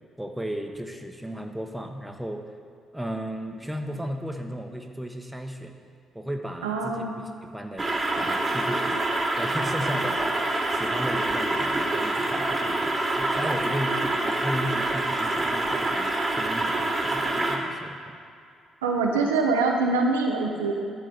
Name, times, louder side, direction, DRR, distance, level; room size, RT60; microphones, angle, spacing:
voice 1, 0.2-2.4 2.9-5.8 6.1-7.1 7.4-7.9 8.2-9.0 9.4-10.4 10.7-16.8 17.0-18.2, equal, 5° right, 3 dB, 1.0 m, -35 dB
voice 2, 6.6-7.2 18.8-20.7, right 3 dB, 80° right, 1 dB, 0.6 m, -24 dB
sound 1, 7.8-17.6, right 2 dB, 25° right, 1.4 m, -26 dB
11.0 x 3.9 x 6.6 m, 2.3 s
figure-of-eight pair, 40°, 0 cm